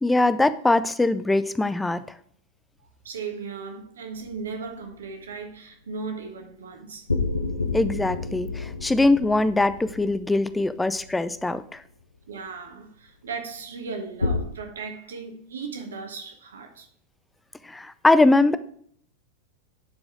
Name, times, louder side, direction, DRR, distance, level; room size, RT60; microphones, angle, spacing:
voice 1, 0.0-2.0 7.7-11.8 17.6-18.6, left 2 dB, 10° left, 0.5 m, -22 dB
voice 2, 3.0-7.1 8.8-8.9 12.3-16.9, right 5 dB, 65° right, 1.5 m, -37 dB
sound 1, 4.2-5.1 7.1-11.5 14.2-14.4, left 3 dB, 80° left, 1.0 m, -30 dB
11.0 x 4.9 x 3.6 m
figure-of-eight pair, 90°, 0 cm